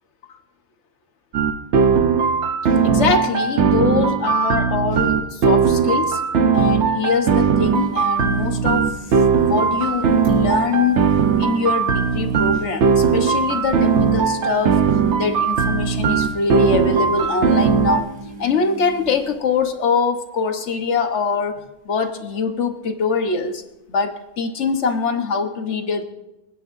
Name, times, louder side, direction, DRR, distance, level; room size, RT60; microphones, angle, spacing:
sound 1, 1.3-18.0, right 6 dB, 70° right, 1.1 m, -18 dB
voice 1, 2.6-6.2 6.5-8.9 9.4-11.1 11.4-14.8 15.1-18.1 18.4-23.6 23.9-26.0, left 5 dB, 70° left, 7 dB, 1.4 m, -23 dB
sound 2, 6.0-6.1 6.2-6.3 7.3-20.4 20.7-21.1 21.4-21.5 23.4-23.5, right 2 dB, 30° right, 3.8 m, -39 dB
24.5 x 9.8 x 2.6 m, 0.98 s
omnidirectional pair, 1.3 m